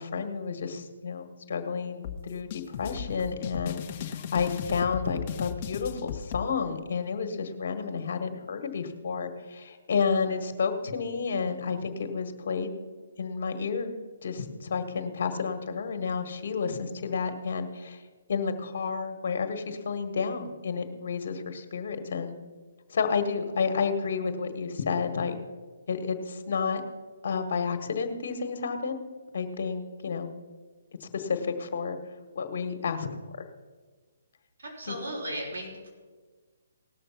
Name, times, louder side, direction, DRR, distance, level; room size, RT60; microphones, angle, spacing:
voice 1, 0.0-12.7 13.2-13.9 14.2-18.0 18.3-22.4 22.9-25.4 25.9-26.8 27.2-29.0 29.3-30.3 31.0-32.0 32.3-33.1 33.4-33.5 34.8-35.0, left 5 dB, 60° left, 7 dB, 1.5 m, -31 dB
sound 1, 2.0-6.4, left 8 dB, 35° left, 0.9 m, -36 dB
voice 2, 34.6-35.9, right 1 dB, 75° right, -3 dB, 4.9 m, -36 dB
18.0 x 6.5 x 5.8 m, 1.4 s
hypercardioid pair, 145°, 0 cm